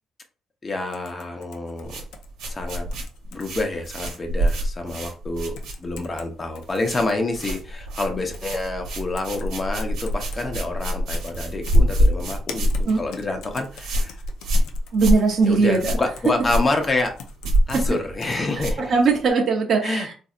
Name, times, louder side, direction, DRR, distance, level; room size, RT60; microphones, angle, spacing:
voice 1, 0.6-2.0 2.4-2.8 3.3-14.2 15.4-17.1 17.7-18.9 19.8-20.1, left 2 dB, 30° left, 4 dB, 0.9 m, -27 dB
sound 1, 0.9-3.4 3.9-4.5 4.9-5.0 5.6-6.3 6.6-7.6 8.3-8.6 8.9-10.4 11.1-11.4 11.7-18.4, left 6 dB, 90° left, 0.5 m, -43 dB
sound 2, 1.8-6.2 6.5-7.1 7.3-19.3, equal, 90° right, 1.1 m, -25 dB
voice 2, 14.9-15.9 17.7-17.8 18.8-20.1, right 4 dB, 55° right, 1 dB, 0.7 m, -20 dB
4.1 x 2.6 x 2.4 m, 0.37 s
cardioid pair, 90°, 0 cm